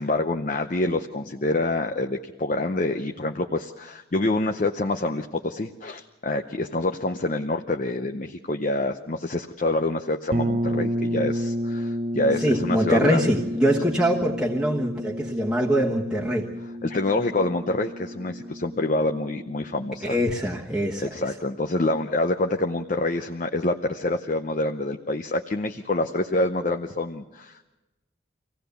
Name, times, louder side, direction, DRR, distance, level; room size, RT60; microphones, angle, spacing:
voice 1, 0.0-13.3 16.8-20.2 21.0-27.7, left 2 dB, 40° left, 5 dB, 0.7 m, -26 dB
sound 1, 10.3-20.0, equal, 40° right, 0.8 m, -31 dB
voice 2, 12.4-16.5 20.0-21.3, equal, 5° right, -4 dB, 1.3 m, -23 dB
25.0 x 17.0 x 6.9 m, 1.0 s
head